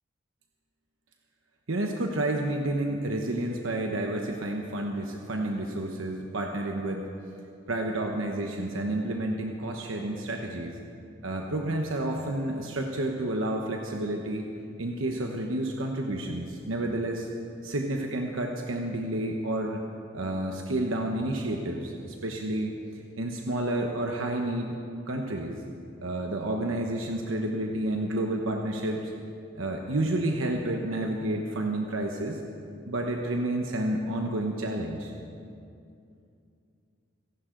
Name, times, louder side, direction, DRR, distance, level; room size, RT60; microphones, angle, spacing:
voice 1, 1.7-7.1 7.7-10.8 11.2-14.5 14.8-17.3 17.6-19.8 20.1-22.8 23.2-24.8 25.1-25.6 26.0-29.1 29.5-32.4 32.9-35.1, right 1 dB, 85° right, 2 dB, 1.1 m, -30 dB
26.5 x 11.0 x 3.9 m, 2.5 s
head